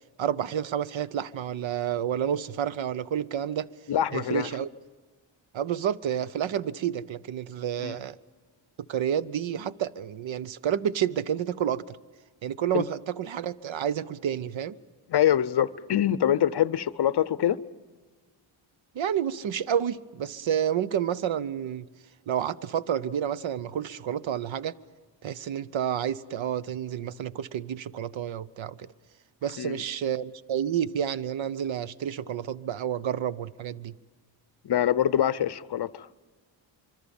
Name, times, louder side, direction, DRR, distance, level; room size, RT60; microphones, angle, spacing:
voice 1, 0.2-3.7 4.1-4.7 5.5-8.2 8.9-12.0 12.4-14.8 18.9-21.9 22.3-24.7 25.2-28.9 29.4-33.9, right 9 dB, 70° right, 0.9 m, -30 dB
voice 2, 3.9-4.5 7.8-8.0 12.7-12.8 15.1-17.6 29.6-29.8 34.6-36.1, left 10 dB, 55° left, 0.7 m, -24 dB
25.5 x 24.0 x 7.2 m
wide cardioid pair, 130°, 47 cm